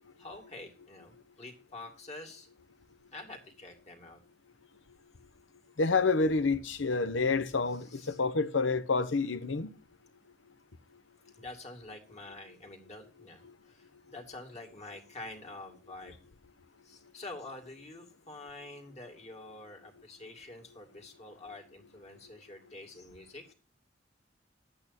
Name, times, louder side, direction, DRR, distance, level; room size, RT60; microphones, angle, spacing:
voice 1, 0.2-2.5 3.1-4.2 7.7-8.2 11.3-16.2 16.8-23.5, left 2 dB, 35° left, 2.2 m, -47 dB
voice 2, 5.8-9.7 13.5-13.6, left 4 dB, 80° left, 0.8 m, -28 dB
11.0 x 8.6 x 4.1 m
head